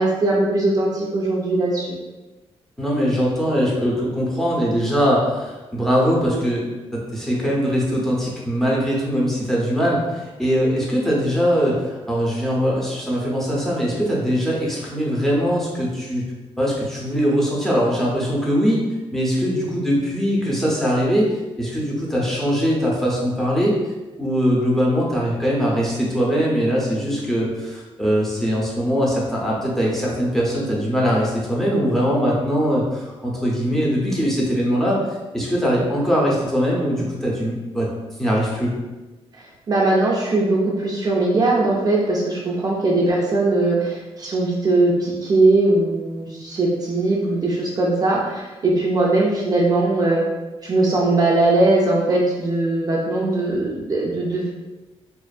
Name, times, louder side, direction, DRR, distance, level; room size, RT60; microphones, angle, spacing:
voice 1, 0.0-2.0 39.7-50.2 50.6-54.5, right 2 dB, 40° right, -3 dB, 0.4 m, -20 dB
voice 2, 2.8-6.7 7.1-16.2 16.6-18.8 19.1-21.3 21.6-23.8 24.2-35.0 35.3-37.9 38.2-38.7, equal, 5° left, -5 dB, 0.6 m, -21 dB
2.4 x 2.4 x 2.3 m, 1.2 s
wide cardioid pair, 125°, 11 cm